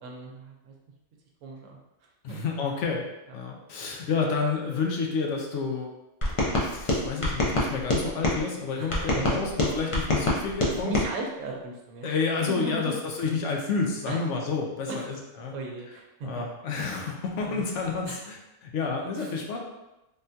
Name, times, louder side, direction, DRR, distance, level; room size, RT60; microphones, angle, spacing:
voice 1, 0.0-0.7 1.4-1.8 2.3-2.4 8.8-9.5 10.7-12.1 12.5-12.9 14.1-14.2 14.9-15.0 15.5-16.3 16.7-16.9 17.4-17.6 18.1-18.2 19.2-19.3, right 2 dB, 85° right, 0 dB, 1.0 m, -36 dB
voice 2, 2.2-3.1 3.3-5.9 6.3-10.9 12.0-15.5 16.2-19.6, left 4 dB, 70° left, 0 dB, 0.9 m, -30 dB
sound 1, 6.2-8.4 8.9-11.1, left 1 dB, 45° left, 0.4 m, -26 dB
3.5 x 2.2 x 2.7 m, 0.96 s
omnidirectional pair, 1.3 m